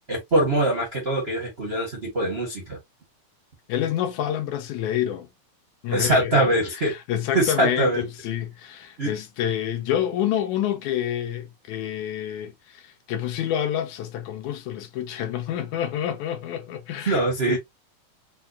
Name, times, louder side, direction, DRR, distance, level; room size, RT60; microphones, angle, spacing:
voice 1, 0.1-2.8 5.9-6.9 7.3-8.0 9.0-9.1 17.1-17.6, right 1 dB, 50° right, 0.7 m, -23 dB
voice 2, 3.7-5.3 5.8-17.2 17.5-17.6, left 11 dB, 90° left, 2.2 m, -28 dB
5.5 x 2.4 x 2.5 m
omnidirectional pair, 3.3 m